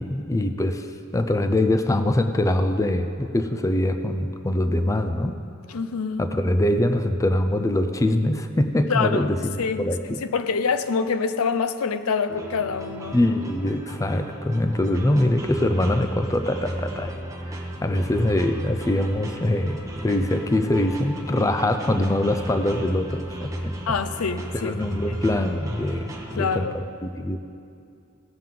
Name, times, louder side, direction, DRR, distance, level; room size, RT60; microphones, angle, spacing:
voice 1, 0.0-5.3 6.2-10.2 13.1-17.1 17.4-23.8 24.5-26.7 27.0-27.4, left 1 dB, 15° left, 7 dB, 0.4 m, -23 dB
voice 2, 5.7-6.2 8.9-13.2 23.9-24.7 25.1-25.2 26.4-26.8, left 5 dB, 80° left, 11 dB, 0.5 m, -26 dB
sound 1, 12.3-26.6, right 1 dB, 15° right, 1.0 m, -34 dB
17.5 x 7.6 x 3.7 m, 2.5 s
head